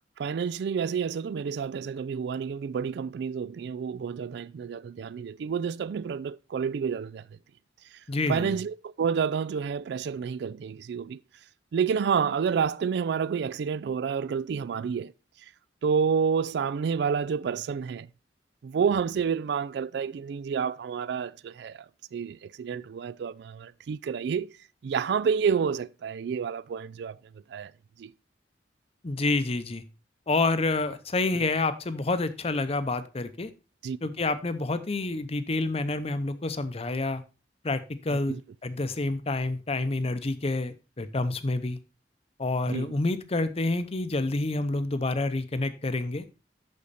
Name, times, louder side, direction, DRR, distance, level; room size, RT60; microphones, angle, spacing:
voice 1, 0.2-7.2 8.3-11.2 11.7-15.1 15.8-18.1 18.6-21.8 22.1-24.5 24.8-27.2 27.5-27.7 28.0-28.1 33.8-34.0 38.3-38.4 42.7-42.9, right 6 dB, 65° right, 0.3 m, -29 dB
voice 2, 8.1-8.6 29.0-29.8 30.3-33.5 34.0-37.2 37.6-41.8 42.4-46.3, left 2 dB, 35° left, 0.7 m, -28 dB
8.7 x 6.3 x 4.0 m
head